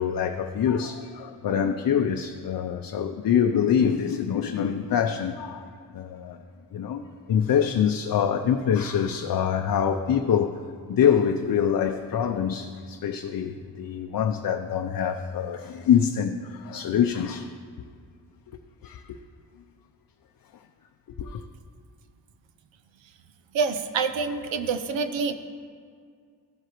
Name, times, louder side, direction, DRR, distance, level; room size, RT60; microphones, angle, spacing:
voice 1, 0.0-6.4 6.7-10.6 10.9-17.5 18.8-19.2 21.2-21.4, left 8 dB, 55° left, 0.6 m, -25 dB
voice 2, 23.5-25.3, right 5 dB, 90° right, 0.7 m, -26 dB
15.5 x 7.8 x 3.0 m
cardioid pair, 80°, 44 cm